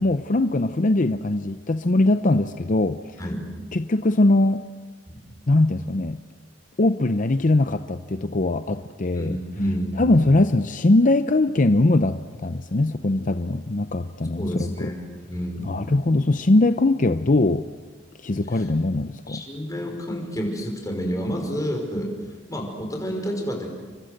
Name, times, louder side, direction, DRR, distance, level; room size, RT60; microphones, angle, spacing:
voice 1, 0.0-3.0 3.7-4.6 5.5-6.2 6.8-9.4 10.0-14.9 15.7-17.7 18.2-19.4, left 2 dB, 45° left, 10 dB, 0.7 m, -21 dB
voice 2, 3.2-3.5 5.1-5.2 9.1-10.2 14.4-15.7 18.5-18.6 19.3-22.1 22.5-23.7, equal, 20° left, 1 dB, 5.4 m, -29 dB
29.5 x 24.0 x 6.7 m, 1.4 s
head